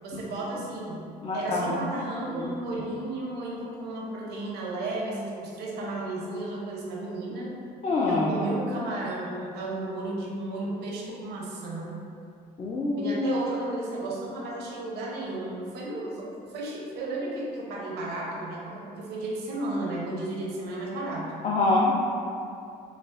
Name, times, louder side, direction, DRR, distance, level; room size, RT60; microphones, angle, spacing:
voice 1, 0.0-7.5 8.0-12.0 13.0-21.3, right 2 dB, 75° right, -3 dB, 0.7 m, -33 dB
voice 2, 1.2-1.9 2.4-2.5 7.8-8.3 12.6-13.4 21.4-21.9, left 3 dB, 35° left, -5 dB, 0.5 m, -25 dB
5.6 x 2.0 x 2.4 m, 2.5 s
cardioid pair, 110°, 17 cm